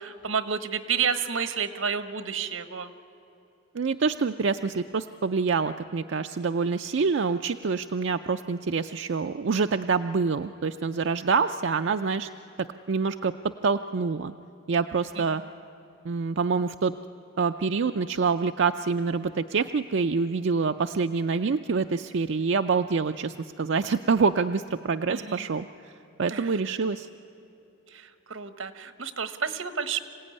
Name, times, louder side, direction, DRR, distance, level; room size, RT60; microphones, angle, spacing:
voice 1, 0.0-2.9 15.2-15.3 25.1-25.4 26.3-26.5 27.9-30.0, right 6 dB, 85° right, 11 dB, 1.2 m, -30 dB
voice 2, 3.7-12.3 12.6-13.3 13.6-14.3 14.7-15.4 16.0-16.9 17.4-25.7 26.2-27.1, right 5 dB, 65° right, 7 dB, 0.5 m, -26 dB
26.0 x 16.5 x 9.7 m, 3.0 s
head